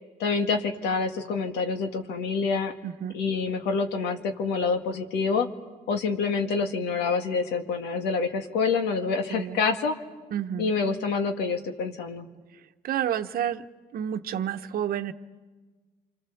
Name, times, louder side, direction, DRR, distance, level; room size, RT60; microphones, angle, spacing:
voice 1, 0.2-2.7 3.1-5.5 5.9-10.0 10.6-12.3, left 4 dB, 85° left, 6 dB, 2.0 m, -27 dB
voice 2, 2.8-3.1 9.3-9.6 10.3-10.7 12.8-13.7 13.9-15.1, right 10 dB, 60° right, 9 dB, 1.0 m, -29 dB
27.0 x 26.0 x 7.1 m, 1.3 s
cardioid pair, 110°, 17 cm